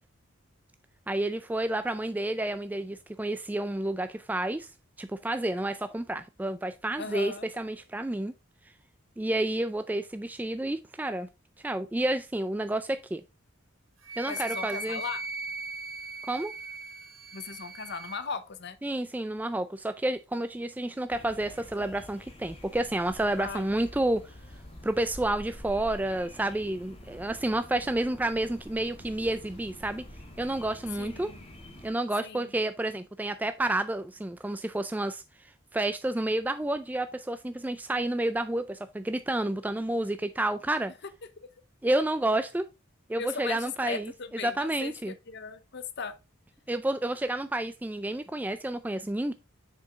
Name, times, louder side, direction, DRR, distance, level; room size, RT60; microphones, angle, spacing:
voice 1, 1.1-4.7 5.0-8.3 9.2-11.3 11.6-13.2 14.2-15.0 16.2-16.5 18.8-24.3 24.8-30.0 30.4-31.3 31.8-40.9 41.8-42.7 43.1-44.1 44.4-45.1 46.7-49.3, right 1 dB, 10° right, 0.3 m, -30 dB
voice 2, 7.0-7.5 14.3-15.2 17.3-18.8 23.4-23.9 31.0-31.4 32.2-32.5 41.4-41.5 42.0-42.1 43.2-46.1, left 5 dB, 55° left, 0.8 m, -38 dB
Wind instrument woodwind instrument, 14.0-18.2, right 3 dB, 75° right, 3.4 m, -39 dB
sound 1, 21.1-31.9, left 1 dB, 30° left, 1.5 m, -47 dB
6.7 x 4.9 x 3.6 m
head